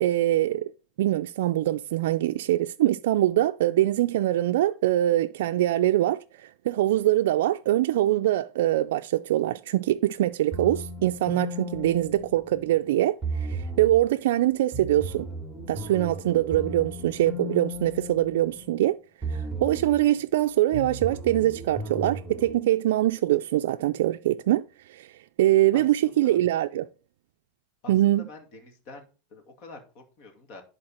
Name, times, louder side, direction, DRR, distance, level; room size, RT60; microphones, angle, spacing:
voice 1, 0.0-0.7 1.0-15.3 15.7-19.0 19.3-26.9 27.9-28.2, right 14 dB, 75° right, 0.3 m, -23 dB
sound 1, 10.5-12.8 13.2-14.1 14.7-18.8 19.2-20.0 20.7-22.5, right 1 dB, 5° right, 2.4 m, -35 dB
voice 2, 25.7-26.4 27.8-30.6, left 2 dB, 45° left, 2.4 m, -47 dB
11.0 x 4.1 x 4.3 m
supercardioid pair, 145°, 0 cm